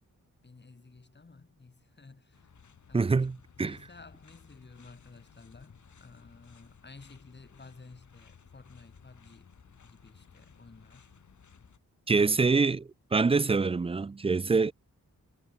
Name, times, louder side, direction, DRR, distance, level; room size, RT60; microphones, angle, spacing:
voice 1, 0.4-2.5 2.9-3.2 3.6-9.5 9.8-11.1 12.2-12.6, left 3 dB, 30° left, 5.6 m, -53 dB
sound 1, 2.3-11.8, left 6 dB, 60° left, 4.1 m, -57 dB
voice 2, 2.9-3.8 12.1-12.8 13.1-14.7, right 4 dB, 20° right, 0.4 m, -25 dB
wide cardioid pair, 135°, 34 cm